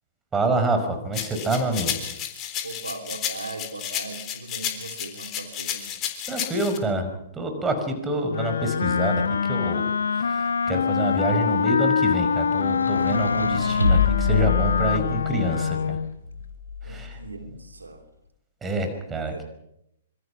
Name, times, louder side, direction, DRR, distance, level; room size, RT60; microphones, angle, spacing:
voice 1, 0.3-2.0 6.3-7.1 7.3-9.2 9.5-9.8 10.2-16.0 16.8-17.2 18.6-19.4, right 2 dB, 15° right, 6 dB, 5.4 m, -27 dB
sound 1, 1.1-6.8, left 10 dB, 30° left, 3.8 m, -32 dB
voice 2, 2.6-6.0 16.8-18.0 19.3-19.4, right 3 dB, 80° right, 6 dB, 3.2 m, -39 dB
Wind instrument woodwind instrument, 8.3-16.1, left 6 dB, 65° left, 0.9 m, -24 dB
sound 2, 12.6-15.4 16.2-17.2, left 5 dB, 90° left, 3.2 m, -25 dB
26.0 x 24.5 x 6.0 m, 0.81 s
figure-of-eight pair, 115°, 0 cm